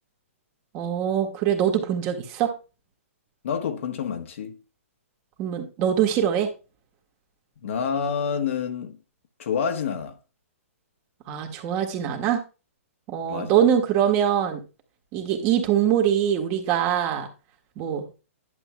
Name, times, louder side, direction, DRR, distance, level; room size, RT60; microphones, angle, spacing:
voice 1, 0.7-2.5 5.4-6.5 11.3-12.4 13.1-14.6 15.1-17.3 17.8-18.1, right 9 dB, 30° right, 1.6 m, -23 dB
voice 2, 3.4-4.6 7.6-9.0 9.4-10.2 13.3-13.6, left 6 dB, 65° left, 1.4 m, -28 dB
11.0 x 6.9 x 2.3 m
hypercardioid pair, 135°, 8 cm